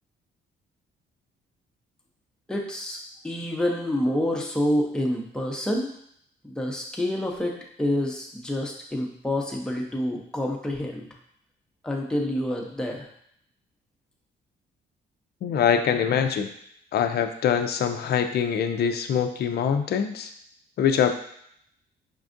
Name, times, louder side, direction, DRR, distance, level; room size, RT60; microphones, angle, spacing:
voice 1, 2.5-3.0 3.2-5.9 6.4-11.1 11.8-13.1, left 1 dB, 5° left, -1 dB, 0.7 m, -28 dB
voice 2, 15.4-16.5 16.9-20.3 20.8-21.1, left 8 dB, 55° left, 7 dB, 0.4 m, -24 dB
5.1 x 2.3 x 2.5 m, 0.69 s
cardioid pair, 90°, 20 cm